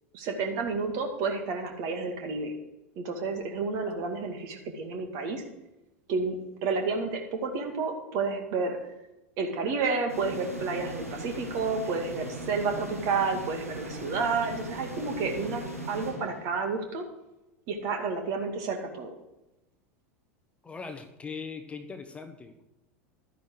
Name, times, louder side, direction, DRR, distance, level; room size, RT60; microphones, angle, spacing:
voice 1, 0.1-2.5 3.0-5.4 6.1-6.4 6.6-8.9 9.4-15.6 15.9-17.0 17.7-19.1, right 4 dB, 45° right, 4 dB, 2.2 m, -30 dB
sound 1, 10.1-16.8, right 1 dB, 85° right, 1.8 m, -39 dB
voice 2, 20.6-22.6, left 5 dB, 15° left, 7 dB, 1.0 m, -40 dB
12.5 x 10.0 x 4.7 m, 0.98 s
figure-of-eight pair, 85°, 7 cm